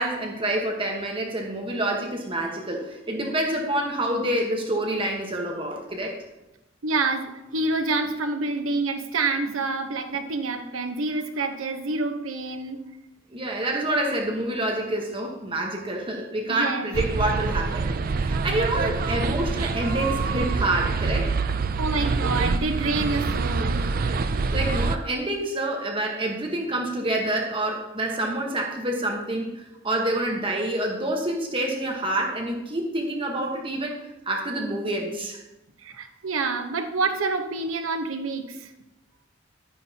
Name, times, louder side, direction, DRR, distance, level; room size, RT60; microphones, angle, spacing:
voice 1, 0.0-6.2 13.3-17.9 18.1-21.3 24.5-34.0 34.3-35.4, right 1 dB, 25° right, 1 dB, 1.2 m, -27 dB
voice 2, 6.8-12.8 16.5-16.9 21.8-23.8 35.8-38.7, right 3 dB, 80° right, 6 dB, 1.0 m, -27 dB
sound 1, 16.9-25.0, right 4 dB, 45° right, 0.4 m, -25 dB
12.0 x 9.4 x 2.8 m, 0.96 s
head